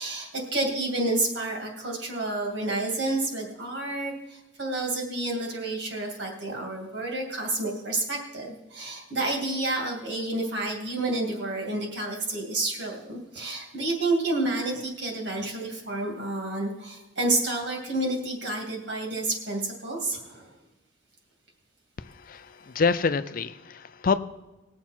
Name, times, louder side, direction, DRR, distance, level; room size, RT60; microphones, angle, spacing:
voice 1, 0.0-20.5, right 2 dB, 60° right, 1 dB, 2.5 m, -29 dB
voice 2, 22.0-24.2, left 5 dB, 45° left, 12 dB, 0.5 m, -27 dB
20.0 x 7.1 x 4.4 m, 1.0 s
head